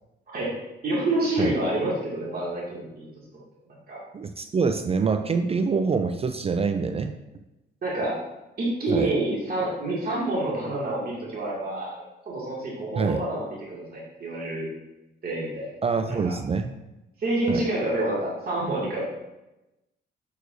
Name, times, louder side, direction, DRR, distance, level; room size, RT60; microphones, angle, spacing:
voice 1, 0.8-3.0 3.9-4.0 7.8-8.2 8.6-11.9 12.3-14.7 15.2-15.7 16.1-16.3 17.2-19.0, right 1 dB, 50° right, -5 dB, 2.2 m, -28 dB
voice 2, 4.1-7.2 8.9-9.1 13.0-13.2 15.8-16.7 17.5-17.6, right 5 dB, 30° right, 8 dB, 0.4 m, -25 dB
6.5 x 6.4 x 2.6 m, 0.97 s
cardioid pair, 90°, 20 cm